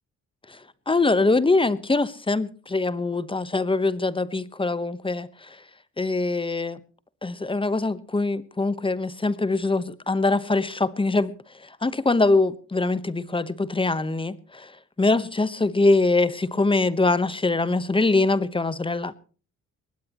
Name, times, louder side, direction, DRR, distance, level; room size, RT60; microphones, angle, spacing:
voice 1, 0.9-5.5 6.0-6.8 7.2-11.3 11.8-14.7 15.0-19.2, left 3 dB, 15° left, 1.1 m, -23 dB
22.0 x 19.0 x 3.0 m
cardioid pair, 90°, 30 cm